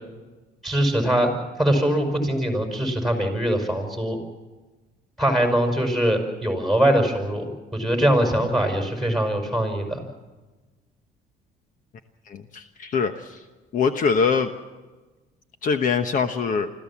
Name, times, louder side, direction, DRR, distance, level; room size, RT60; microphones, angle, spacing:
voice 1, 0.6-1.3 1.6-4.2 5.2-10.0, right 1 dB, ahead, 5 dB, 5.4 m, -22 dB
voice 2, 12.3-13.4 13.7-14.5 15.6-16.7, left 5 dB, 50° left, 8 dB, 1.1 m, -23 dB
25.0 x 14.5 x 7.3 m, 1.2 s
cardioid pair, 110°, 17 cm